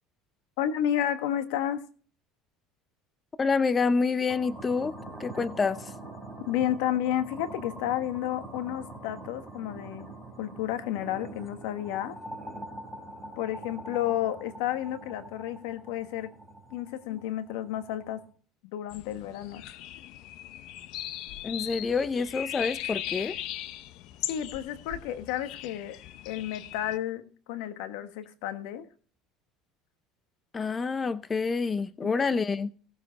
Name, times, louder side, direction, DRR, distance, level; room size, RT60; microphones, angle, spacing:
voice 1, 0.6-1.8 6.5-10.1 10.4-12.2 13.4-16.3 16.7-18.2 18.7-19.6 24.3-26.0 26.2-28.9 32.0-32.1, left 11 dB, 80° left, 1.5 m, -31 dB
voice 2, 3.4-4.9 5.2-5.9 21.4-23.4 30.5-32.7, left 4 dB, 20° left, 0.6 m, -27 dB
sound 1, 4.3-18.3, right 1 dB, ahead, 4.4 m, -44 dB
sound 2, 18.9-27.0, left 13 dB, 65° left, 0.7 m, -39 dB
17.0 x 7.4 x 4.1 m
supercardioid pair, 125°, 0 cm